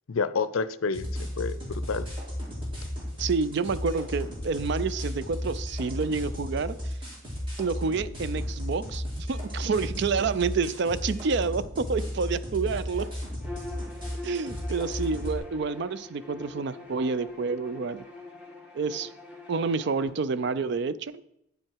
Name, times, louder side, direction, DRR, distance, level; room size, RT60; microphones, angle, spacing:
voice 1, 0.1-2.1, left 4 dB, 75° left, 15 dB, 0.5 m, -29 dB
sound 1, 0.9-15.4, equal, 25° right, 3.0 m, -34 dB
voice 2, 3.2-6.9 7.6-13.1 14.2-18.0 18.7-19.1 19.5-21.1, right 4 dB, 55° right, 16 dB, 0.4 m, -28 dB
Bowed string instrument, 13.4-20.1, left 3 dB, 5° right, 1.4 m, -44 dB
9.4 x 7.7 x 4.6 m, 0.79 s
head